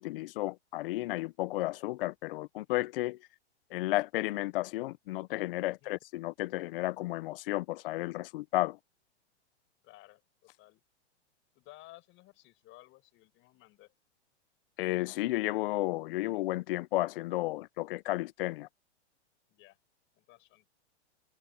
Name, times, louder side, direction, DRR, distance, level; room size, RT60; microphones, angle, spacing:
voice 1, 0.0-3.2 3.7-8.8 14.8-18.7, left 18 dB, 50° left, 1.0 m, -33 dB
voice 2, 9.8-10.8 11.5-13.9 19.5-19.8 20.1-20.7, left 18 dB, 35° left, 7.7 m, -56 dB
hypercardioid pair, 130°, 35 cm